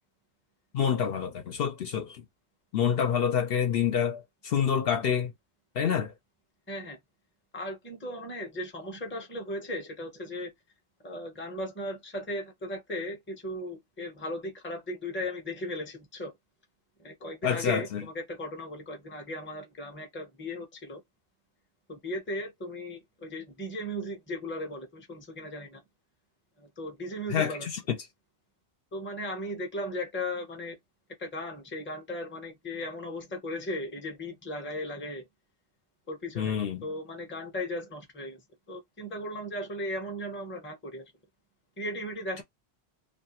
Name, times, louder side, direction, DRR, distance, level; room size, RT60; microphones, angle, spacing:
voice 1, 0.7-2.2 2.7-5.3 5.8-6.1 17.4-18.0 27.3-28.0 36.4-36.8, left 8 dB, 65° left, 0.7 m, -27 dB
voice 2, 6.7-7.0 7.5-10.5 11.0-16.3 17.0-21.0 21.9-25.8 26.6-27.7 28.9-30.8 31.2-35.3 36.1-38.4 38.7-41.1 41.8-42.4, left 1 dB, 15° left, 0.6 m, -37 dB
2.5 x 2.3 x 2.8 m
omnidirectional pair, 1.1 m